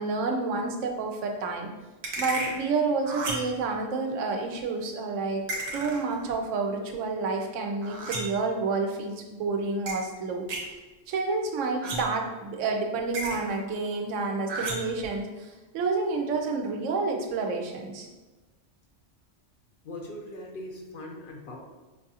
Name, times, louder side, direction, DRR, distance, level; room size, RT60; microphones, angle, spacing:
voice 1, 0.0-1.7 2.2-5.5 5.7-10.5 11.1-18.1, right 3 dB, 90° right, 3 dB, 1.0 m, -29 dB
sound 1, 2.0-2.6 3.1-3.6 5.5-6.2 7.8-8.5 9.9-10.0 10.5-10.7 11.8-12.3 13.1-13.6 14.5-15.0, right 2 dB, 60° right, 1.0 m, -33 dB
voice 2, 19.8-21.6, left 1 dB, 60° left, 0 dB, 0.6 m, -40 dB
5.2 x 2.4 x 2.7 m, 1.2 s
omnidirectional pair, 1.2 m